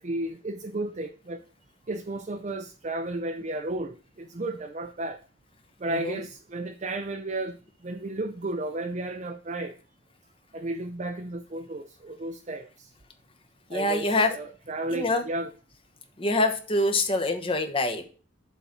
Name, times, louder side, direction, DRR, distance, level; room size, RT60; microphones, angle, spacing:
voice 1, 0.0-1.4 1.9-5.2 5.8-7.5 7.8-9.7 10.5-12.9 13.7-15.5, right 2 dB, 40° right, 0.6 m, -33 dB
voice 2, 13.7-14.3 14.9-15.2 16.2-18.0, left 2 dB, 30° left, 1.1 m, -25 dB
7.1 x 4.2 x 5.9 m
head